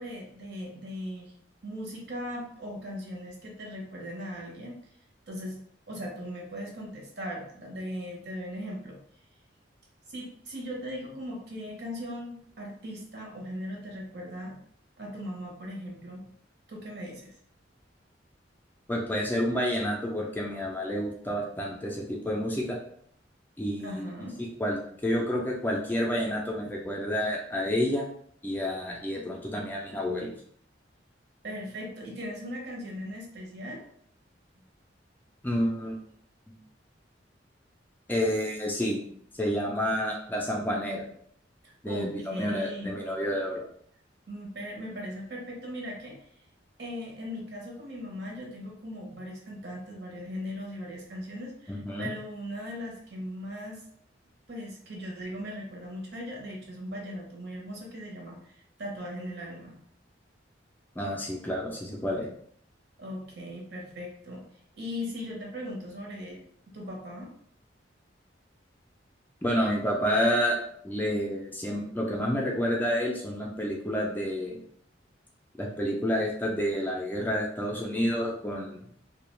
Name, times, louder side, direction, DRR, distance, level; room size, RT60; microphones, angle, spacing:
voice 1, 0.0-1.3 1.6-4.7 5.3-5.6 5.9-9.0 10.1-14.6 15.0-16.3 16.7-17.3 23.8-24.4 31.4-33.8 41.9-42.9 44.3-46.4 46.8-53.8 54.5-59.8 63.0-64.4 64.8-66.4 66.7-67.3, equal, 60° right, -1 dB, 0.8 m, -38 dB
voice 2, 18.9-22.8 23.6-24.0 24.4-28.0 28.4-30.3 35.4-36.0 36.5-36.6 38.1-39.0 39.4-41.0 41.8-43.6 51.7-52.1 61.0-62.3 69.4-70.6 70.8-74.6 75.6-78.8, equal, 10° left, -2 dB, 0.3 m, -29 dB
2.3 x 2.1 x 3.0 m, 0.65 s
head